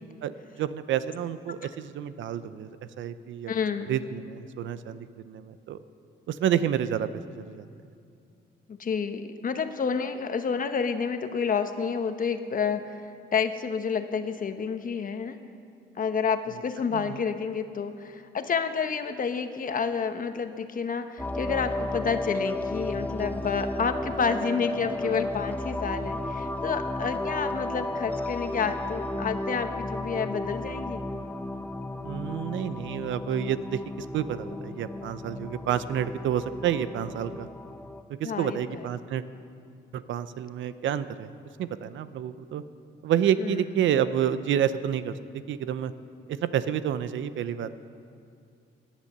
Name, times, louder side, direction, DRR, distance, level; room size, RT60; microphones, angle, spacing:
voice 1, 0.6-3.5 3.9-5.8 6.3-7.7 16.9-17.2 32.0-37.5 38.1-39.2 39.9-42.6 43.0-45.9 46.3-47.7, right 9 dB, 75° right, 13 dB, 0.7 m, -29 dB
voice 2, 3.5-3.9 8.7-13.0 13.3-15.4 16.0-31.0 38.2-38.8 43.4-43.6, left 6 dB, 45° left, 8 dB, 1.1 m, -29 dB
sound 1, 21.2-38.0, left 1 dB, 10° left, 0.6 m, -33 dB
18.0 x 10.5 x 6.7 m, 2.5 s
cardioid pair, 90°, 20 cm